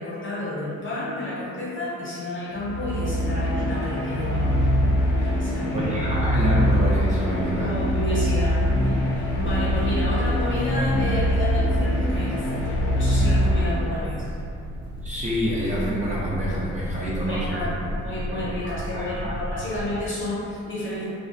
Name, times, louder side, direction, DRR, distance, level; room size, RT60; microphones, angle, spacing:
voice 1, 0.0-5.9 7.6-14.3 17.3-21.1, left 1 dB, 40° left, -7 dB, 0.8 m, -31 dB
sound 1, 2.5-14.2, equal, 85° left, 0.6 m, -23 dB
sound 2, 5.1-20.0, equal, 85° right, 0.6 m, -34 dB
voice 2, 5.7-7.7 15.0-17.7 18.3-18.4 18.9-19.4, equal, 25° right, -7 dB, 0.5 m, -27 dB
2.4 x 2.1 x 2.5 m, 2.6 s
cardioid pair, 90°, 30 cm